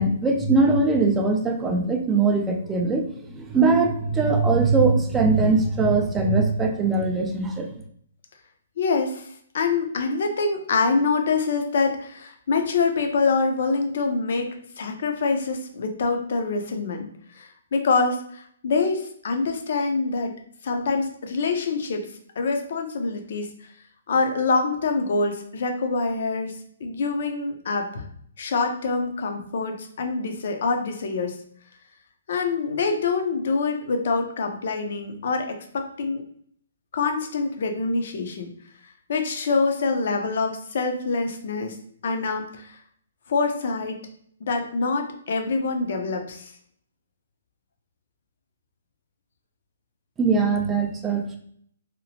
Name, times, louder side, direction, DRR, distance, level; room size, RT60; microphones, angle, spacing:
voice 1, 0.0-7.7 50.2-51.4, right 3 dB, 10° right, 3 dB, 0.3 m, -21 dB
voice 2, 8.8-9.3 9.5-14.5 14.8-17.1 17.4-20.3 20.6-22.0 22.4-23.5 24.1-26.5 26.8-28.0 28.4-31.4 32.3-36.2 36.9-38.5 39.1-41.7 42.0-42.8 43.3-44.0 44.4-46.5, left 4 dB, 55° left, 4 dB, 0.6 m, -25 dB
2.8 x 2.0 x 2.7 m, 0.64 s
hypercardioid pair, 165°, 0 cm